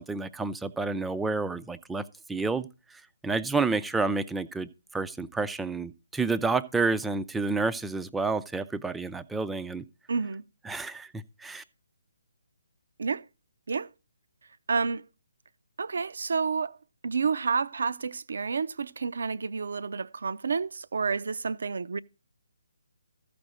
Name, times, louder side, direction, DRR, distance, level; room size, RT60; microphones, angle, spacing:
voice 1, 0.0-2.0 2.3-2.7 3.2-9.8 10.7-11.6, right 3 dB, 5° right, 0.4 m, -29 dB
voice 2, 10.1-10.4 13.0-13.2 13.7-13.9 14.7-15.0 15.8-16.8 17.0-22.0, right 5 dB, 65° right, 0.5 m, -29 dB
14.0 x 5.2 x 6.2 m
figure-of-eight pair, 145°, 0 cm